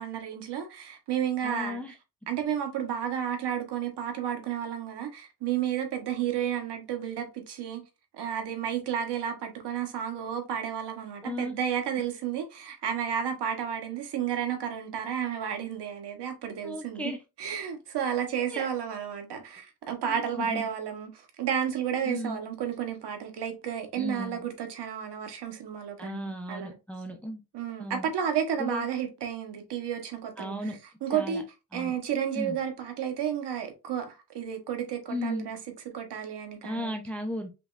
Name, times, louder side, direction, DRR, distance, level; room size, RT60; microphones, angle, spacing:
voice 1, 0.0-1.8 2.3-7.8 8.1-17.1 17.4-26.7 27.5-31.4 31.7-35.6 35.9-36.9, right 8 dB, 85° right, 1.2 m, -32 dB
voice 2, 1.4-1.9 11.2-11.6 16.6-17.2 18.5-18.7 20.1-20.6 22.0-22.4 24.0-24.4 26.0-27.4 27.8-28.1 28.6-28.9 30.4-30.8 31.1-31.4 31.7-31.9 32.3-32.6 35.1-35.5 36.6-37.5, left 1 dB, 5° left, 0.6 m, -35 dB
5.1 x 3.1 x 2.5 m
wide cardioid pair, 135°, 40 cm